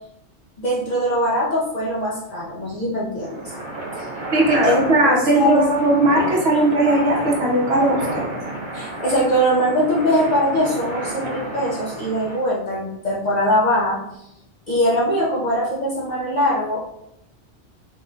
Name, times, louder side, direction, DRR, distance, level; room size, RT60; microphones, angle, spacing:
voice 1, 0.6-3.5 4.0-4.1 4.6-5.7 8.7-14.0 14.7-16.8, equal, 50° left, -6 dB, 0.6 m, -21 dB
sound 1, 3.2-12.4, right 2 dB, 30° right, 0.7 m, -31 dB
voice 2, 4.3-8.3, right 1 dB, 65° right, -2 dB, 0.9 m, -18 dB
3.5 x 2.2 x 2.5 m, 0.82 s
omnidirectional pair, 1.2 m